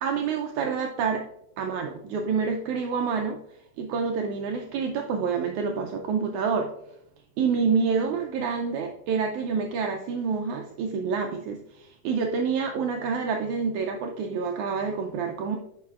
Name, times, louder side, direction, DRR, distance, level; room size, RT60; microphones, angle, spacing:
voice 1, 0.0-1.3 1.6-3.4 3.8-6.7 7.4-15.6, right 5 dB, 90° right, 3 dB, 1.6 m, -27 dB
10.5 x 4.9 x 2.3 m, 0.81 s
omnidirectional pair, 4.0 m